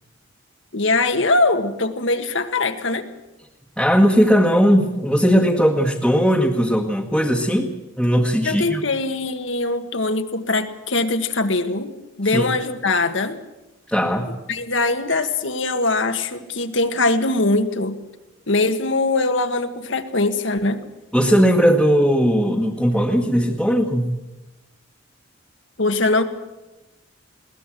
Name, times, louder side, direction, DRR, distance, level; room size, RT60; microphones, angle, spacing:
voice 1, 0.7-3.1 8.4-11.9 12.2-13.4 14.5-18.0 18.5-20.8 25.8-26.2, left 2 dB, 70° left, 8 dB, 1.6 m, -21 dB
voice 2, 3.8-7.7 8.0-8.8 12.3-12.4 13.9-14.4 21.1-24.2, equal, ahead, -2 dB, 1.5 m, -18 dB
21.5 x 18.0 x 7.6 m, 1.0 s
head